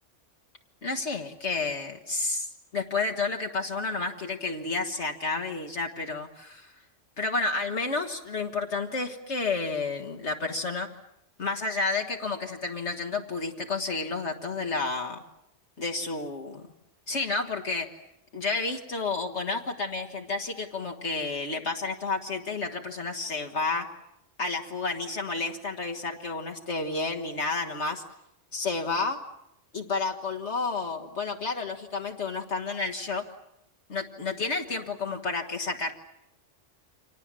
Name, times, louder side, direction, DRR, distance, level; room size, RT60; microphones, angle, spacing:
voice 1, 0.8-6.7 7.2-10.9 11.4-15.2 15.8-16.6 17.1-17.9 18.3-23.9 24.4-28.0 28.5-29.2 29.7-33.2 33.9-35.9, left 3 dB, 65° left, 3 dB, 1.9 m, -31 dB
29.5 x 25.5 x 7.5 m, 0.84 s
omnidirectional pair, 1.3 m